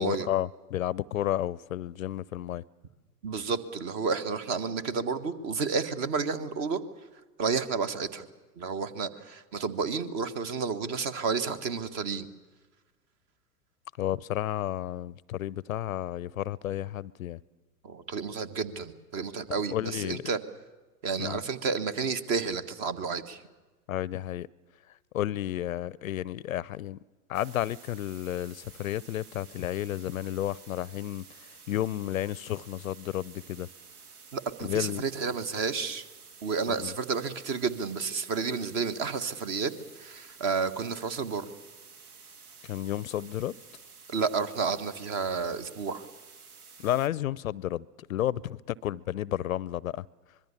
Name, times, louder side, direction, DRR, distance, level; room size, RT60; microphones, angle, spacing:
voice 1, 0.0-2.6 14.0-17.4 19.5-20.2 21.1-21.4 23.9-24.5 25.1-27.0 27.3-33.7 34.6-35.0 36.7-36.9 42.6-43.6 46.8-50.1, left 12 dB, 55° left, 0.6 m, -32 dB
voice 2, 3.2-6.8 7.4-8.2 8.6-12.3 17.8-20.4 21.0-23.4 34.3-36.1 36.4-39.7 40.0-41.5 44.1-46.0, right 5 dB, 35° right, 1.6 m, -31 dB
sound 1, 27.3-47.1, right 5 dB, 65° right, 1.7 m, -52 dB
25.0 x 22.0 x 7.1 m
figure-of-eight pair, 100°, 48 cm